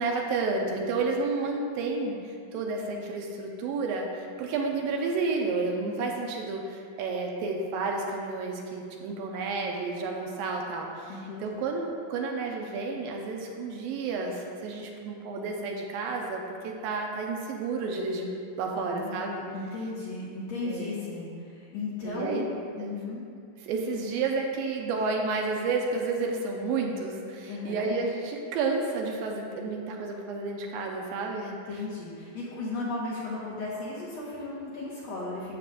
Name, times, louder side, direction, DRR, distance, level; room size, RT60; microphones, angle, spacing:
voice 1, 0.0-18.3 18.6-19.4 20.6-20.9 22.0-22.5 22.8-22.9 23.6-31.8, right 3 dB, 80° right, 1 dB, 2.4 m, -31 dB
voice 2, 11.1-11.5 18.7-22.5 22.8-23.2 27.5-27.9 31.5-35.5, left 3 dB, 60° left, -8 dB, 2.0 m, -36 dB
12.0 x 7.6 x 2.5 m, 2.4 s
omnidirectional pair, 4.3 m